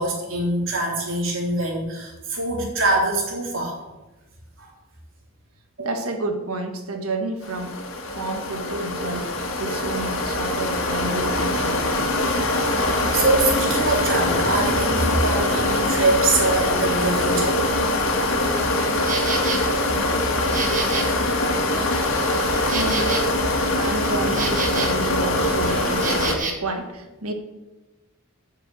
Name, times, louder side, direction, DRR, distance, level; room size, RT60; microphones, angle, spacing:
voice 1, 0.0-3.8 4.6-4.7 5.8-5.9 12.5-17.6 18.4-18.9 21.3-21.5 22.6-22.7, right 2 dB, 65° right, -2 dB, 3.2 m, -24 dB
voice 2, 5.8-7.8 8.1-9.3 9.6-12.1 22.7-27.3, right 2 dB, 85° right, 5 dB, 1.6 m, -30 dB
sound 1, 7.4-26.4, left 1 dB, 65° left, 1.7 m, -23 dB
Insect, 18.5-26.5, right 5 dB, 35° right, 1.3 m, -32 dB
8.8 x 6.5 x 7.6 m, 1.1 s
head